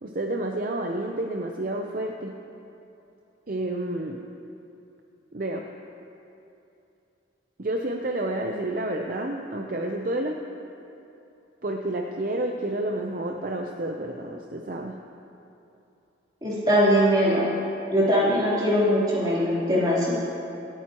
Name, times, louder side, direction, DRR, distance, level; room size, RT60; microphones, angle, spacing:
voice 1, 0.0-2.4 3.5-4.2 5.3-5.7 7.6-10.4 11.6-15.0, right 1 dB, 45° right, 2 dB, 0.6 m, -30 dB
voice 2, 16.4-17.5 17.9-20.1, equal, 20° right, -9 dB, 3.3 m, -21 dB
26.5 x 9.1 x 3.0 m, 2.8 s
head